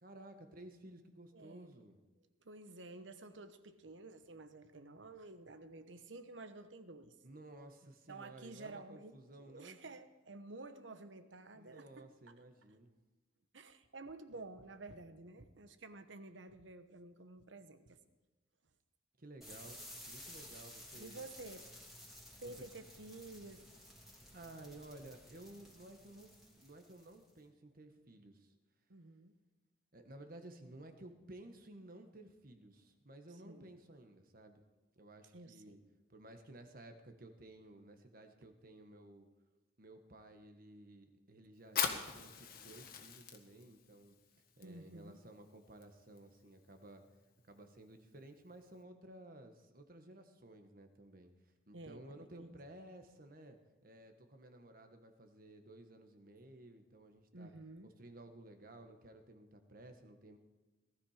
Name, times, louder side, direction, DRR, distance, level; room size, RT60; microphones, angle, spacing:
voice 1, 0.0-2.0 7.2-9.8 11.5-12.9 19.2-19.8 20.1-21.2 22.3-22.7 24.3-28.5 29.9-34.6 35.0-35.8 36.1-39.3 39.8-44.2 44.6-47.0 47.5-53.6 53.8-57.5 57.8-60.4, right 1 dB, 50° right, 6 dB, 1.4 m, -55 dB
voice 2, 1.3-1.8 2.4-7.2 8.1-9.1 9.4-12.3 13.5-18.0 21.0-21.7 22.4-23.6 28.9-29.4 33.4-33.7 35.3-35.8 44.6-45.2 51.7-52.5 57.3-57.9, right 2 dB, 80° right, 10 dB, 1.1 m, -51 dB
sound 1, 19.4-27.3, equal, ahead, 3.1 m, -55 dB
Fire, 41.6-48.8, left 7 dB, 50° left, 1.6 m, -44 dB
18.5 x 13.5 x 5.0 m, 1.2 s
head